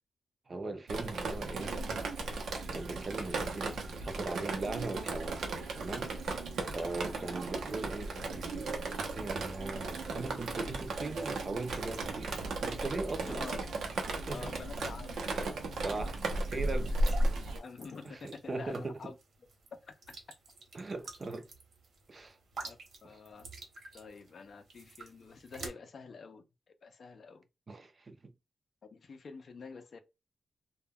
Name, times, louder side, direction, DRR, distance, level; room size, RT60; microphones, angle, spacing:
voice 1, 0.5-1.8 2.7-5.5 5.7-6.1 6.7-8.7 9.1-13.5 14.1-14.4 15.8-16.9 18.1-19.0 20.7-21.5 22.1-22.4 23.1-23.2 27.7-28.3, right 3 dB, 30° right, 0.4 m, -39 dB
Drip, 0.9-17.6, right 2 dB, 85° right, 0.6 m, -35 dB
voice 2, 13.2-13.6 14.3-15.2 17.1-19.1 19.8-20.0 22.6-23.5 23.9-27.4 28.9-30.0, left 5 dB, 50° left, 0.4 m, -48 dB
sound 1, 16.1-25.7, right 3 dB, 65° right, 0.9 m, -49 dB
2.2 x 2.2 x 3.4 m
wide cardioid pair, 155°, 0 cm